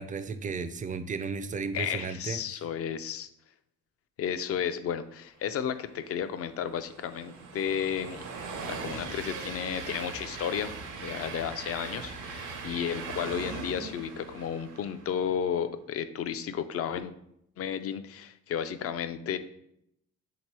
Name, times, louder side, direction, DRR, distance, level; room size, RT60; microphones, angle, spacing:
voice 1, 0.0-2.4, right 5 dB, 25° right, 11 dB, 0.4 m, -34 dB
voice 2, 1.7-3.3 4.2-17.1 17.6-19.4, left 8 dB, 50° left, 11 dB, 0.4 m, -33 dB
Train, 5.9-15.3, right 4 dB, 80° right, 0.8 m, -40 dB
3.6 x 2.9 x 4.6 m, 0.75 s
cardioid pair, 90°, 30 cm